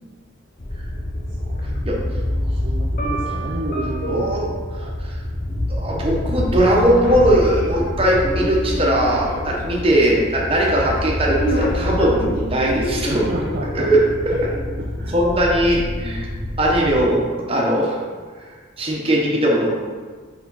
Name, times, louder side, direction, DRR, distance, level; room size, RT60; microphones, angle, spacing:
sound 1, 0.6-17.0, left 1 dB, 45° left, 0.8 m, -26 dB
voice 1, 1.3-5.0 13.1-13.9 14.8-15.1, right 1 dB, 50° right, -2 dB, 0.5 m, -32 dB
voice 2, 4.1-4.5 5.0-5.2 5.7-13.4 13.7-14.0 14.3-14.5 15.1-16.3 16.6-18.0 18.8-19.7, right 1 dB, 30° right, -3 dB, 1.0 m, -19 dB
5.0 x 4.9 x 4.1 m, 1.5 s
head